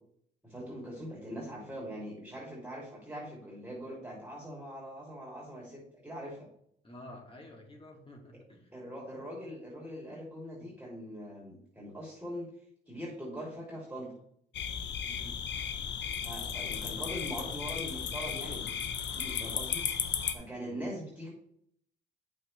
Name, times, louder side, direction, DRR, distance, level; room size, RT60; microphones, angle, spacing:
voice 1, 0.4-6.5 8.3-8.4 8.7-12.5 12.9-14.1 16.2-18.7 19.1-19.9 20.3-21.3, equal, 5° right, -3 dB, 2.8 m, -42 dB
voice 2, 6.8-8.7 10.0-10.2 10.5-10.7 15.0-15.4 20.6-20.9, left 1 dB, 25° left, 1 dB, 2.6 m, -50 dB
sound 1, 14.5-20.3, left 8 dB, 65° left, 0.9 m, -35 dB
8.7 x 6.4 x 3.2 m, 0.67 s
cardioid pair, 90°, 20 cm